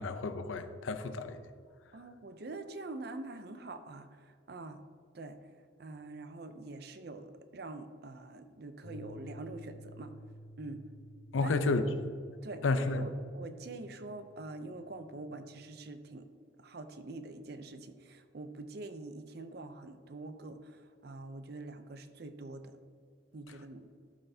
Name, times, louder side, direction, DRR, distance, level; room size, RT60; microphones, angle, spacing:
voice 1, 0.0-1.4 11.3-11.8 12.6-13.1, left 3 dB, 85° left, 10 dB, 0.6 m, -31 dB
voice 2, 1.9-4.8 5.1-5.4 5.8-10.1 10.6-10.9 11.4-11.6 12.4-16.3 16.6-22.7 23.3-23.9, right 2 dB, 55° right, 9 dB, 0.5 m, -45 dB
sound 1, 8.8-15.9, equal, 35° left, 0.8 m, -53 dB
12.5 x 5.6 x 2.8 m, 2.1 s
head